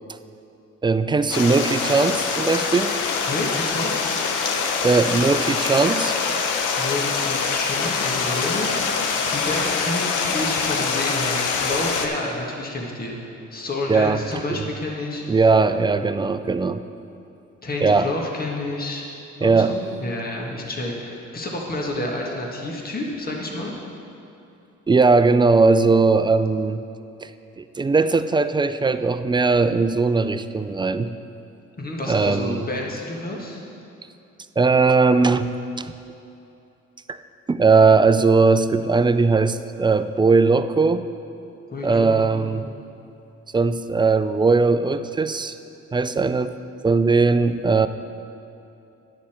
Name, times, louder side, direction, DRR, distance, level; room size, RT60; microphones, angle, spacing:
voice 1, 0.8-3.0 4.8-6.1 13.9-14.2 14.5-14.7 15.3-16.8 17.8-18.1 19.4-19.8 24.9-26.8 27.2-27.3 27.6-31.1 32.1-32.6 34.6-35.5 35.8-35.9 37.1-37.2 37.5-41.1 41.8-42.7 43.5-45.6 45.9-46.6 46.8-47.9, right 4 dB, 15° right, 11 dB, 0.3 m, -19 dB
Stream, 1.3-12.1, left 5 dB, 80° left, 0.9 m, -24 dB
voice 2, 3.3-4.3 6.8-8.8 9.3-13.2 13.5-15.4 17.6-19.1 19.4-23.7 31.8-33.6 41.7-42.6, left 2 dB, 30° left, -1 dB, 1.6 m, -29 dB
10.5 x 8.5 x 4.4 m, 2.8 s
cardioid pair, 90°, 30 cm